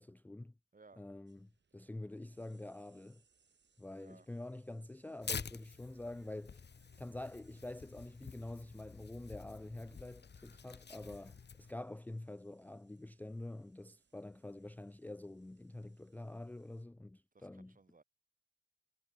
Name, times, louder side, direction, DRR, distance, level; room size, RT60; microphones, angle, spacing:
voice 1, 0.0-0.5 1.0-3.2 3.8-6.6 7.0-17.8, left 1 dB, 10° left, 0.3 m, -47 dB
voice 2, 0.7-1.0 4.0-4.3 17.3-18.0, right 3 dB, 50° right, 5.9 m, -61 dB
sound 1, 1.3-16.8, right 5 dB, 85° right, 7.8 m, -76 dB
Tearing, 5.2-11.7, left 6 dB, 70° left, 1.3 m, -48 dB
wide cardioid pair, 95°, 18 cm